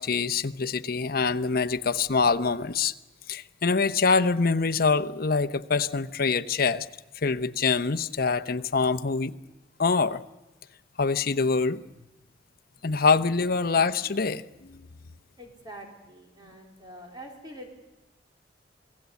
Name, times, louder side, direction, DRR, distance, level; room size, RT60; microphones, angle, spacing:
voice 1, 0.0-2.9 3.3-6.9 7.1-9.3 9.8-10.2 11.0-11.8 12.8-14.8, left 4 dB, 55° left, 10 dB, 0.8 m, -25 dB
voice 2, 15.4-17.7, right 1 dB, 25° right, 1 dB, 3.9 m, -45 dB
28.0 x 18.5 x 8.3 m, 1.0 s
head